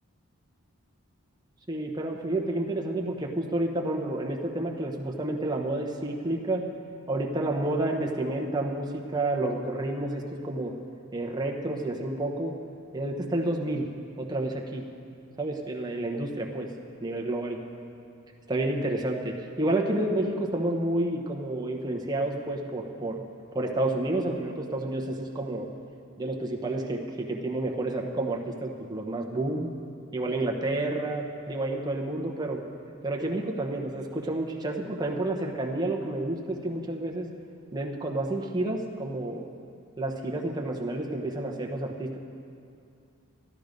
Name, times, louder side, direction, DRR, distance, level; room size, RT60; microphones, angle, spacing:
voice 1, 1.7-6.7 7.1-10.7 11.1-12.5 12.9-13.9 14.2-14.8 15.4-16.7 17.0-17.6 18.5-23.2 23.5-25.7 26.2-29.7 30.1-32.6 33.0-37.3 37.7-39.5 40.0-42.2, right 2 dB, 20° right, 0 dB, 0.9 m, -30 dB
12.5 x 12.0 x 5.2 m, 2.5 s
head